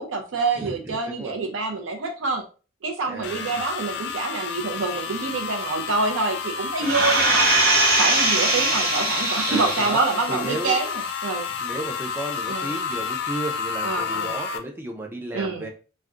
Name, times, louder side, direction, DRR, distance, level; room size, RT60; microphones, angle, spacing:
voice 1, 0.0-2.4 2.8-7.5 8.0-11.5 12.5-12.7 13.8-14.3 15.3-15.7, right 3 dB, 75° right, 3 dB, 0.5 m, -26 dB
voice 2, 0.6-1.3 3.1-3.7 6.8-7.1 9.5-10.0 10.3-10.8 11.6-15.7, right 1 dB, 10° right, 2 dB, 0.5 m, -34 dB
sound 1, 3.2-14.6, left 6 dB, 60° left, 0.4 m, -31 dB
sound 2, 6.8-10.2 10.7-10.8, right 2 dB, 50° right, 0.9 m, -21 dB
2.4 x 2.2 x 3.6 m, 0.35 s
head